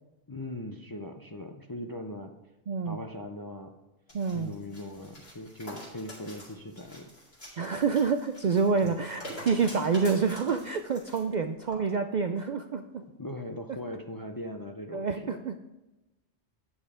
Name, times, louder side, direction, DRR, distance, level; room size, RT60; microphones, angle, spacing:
voice 1, 0.3-2.3 2.8-3.8 4.3-7.1 7.4-7.6 8.8-8.9 13.2-15.5, left 1 dB, 25° left, 4 dB, 0.4 m, -40 dB
voice 2, 2.7-3.0 4.1-4.5 7.6-13.0 14.9-15.6, right 5 dB, 60° right, 7 dB, 0.5 m, -28 dB
sound 1, 4.1-11.2 11.7-11.8, equal, 55° left, 4.0 m, -45 dB
9.7 x 7.2 x 4.9 m, 1.0 s
omnidirectional pair, 1.2 m